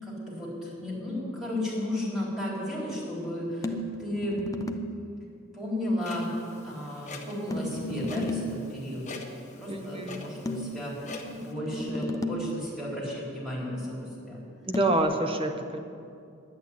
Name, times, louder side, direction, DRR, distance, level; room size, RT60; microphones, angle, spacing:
voice 1, 0.0-4.4 5.5-9.1 9.6-14.4, left 1 dB, ahead, -6 dB, 3.9 m, -34 dB
sound 1, 3.6-5.0 7.5-8.7 10.5-12.7 14.7-15.0, left 1 dB, 15° left, 0.6 m, -34 dB
Clock, 6.0-11.5, left 3 dB, 35° left, 1.3 m, -45 dB
voice 2, 9.7-10.2 14.7-15.8, right 1 dB, 25° right, 5 dB, 0.9 m, -27 dB
11.0 x 8.6 x 9.7 m, 2.4 s
head